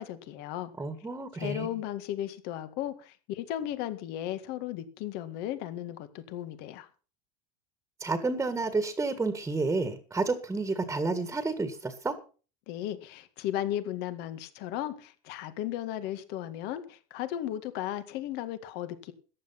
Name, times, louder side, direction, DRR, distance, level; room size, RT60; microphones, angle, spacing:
voice 1, 0.0-0.7 1.3-6.9 12.7-19.1, left 12 dB, 60° left, 11 dB, 1.9 m, -35 dB
voice 2, 0.8-1.7 8.0-12.2, right 3 dB, 10° right, 11 dB, 1.7 m, -30 dB
14.5 x 10.5 x 5.7 m, 0.37 s
supercardioid pair, 135°, 18 cm